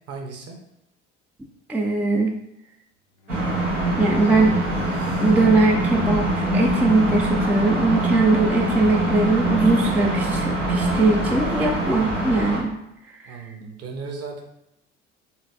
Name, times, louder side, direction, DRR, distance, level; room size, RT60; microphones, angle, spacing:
voice 1, 0.1-0.6 13.3-14.4, right 4 dB, 45° right, 3 dB, 1.0 m, -35 dB
voice 2, 1.7-2.3 4.0-4.6 5.2-12.8 13.1-13.4, right 3 dB, 5° right, 1 dB, 0.3 m, -21 dB
Bowed string instrument, 3.2-8.1, right 1 dB, 60° left, 0.6 m, -42 dB
sound 1, 3.3-12.6, right 1 dB, 90° right, 1.1 m, -23 dB
4.4 x 3.7 x 2.7 m, 0.84 s
figure-of-eight pair, 60°, 35 cm